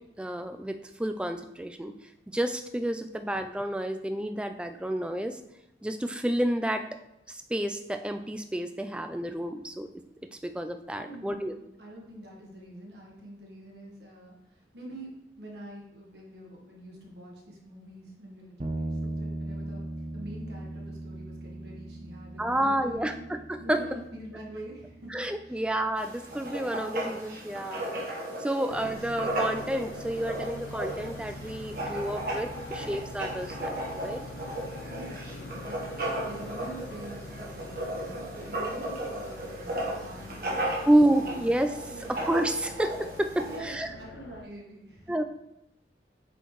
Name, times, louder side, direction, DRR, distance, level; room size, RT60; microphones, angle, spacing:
voice 1, 0.2-1.9 2.3-5.4 5.8-6.9 7.3-9.9 10.4-11.5 22.4-23.1 23.5-23.8 25.1-27.9 28.4-34.2 40.9-43.9 45.1-45.2, right 1 dB, 5° right, 7 dB, 0.3 m, -29 dB
voice 2, 11.0-23.2 23.6-25.2 25.4-25.6 34.9-41.4 41.9-42.2 43.4-45.1, right 1 dB, 70° right, -2 dB, 1.4 m, -45 dB
sound 1, 18.6-28.1, right 1 dB, 35° right, 0.6 m, -40 dB
Writing, 26.0-43.6, right 1 dB, 50° right, 1.4 m, -35 dB
sound 2, 28.7-44.4, left 2 dB, 85° left, 0.5 m, -44 dB
7.9 x 4.4 x 3.1 m, 0.85 s
head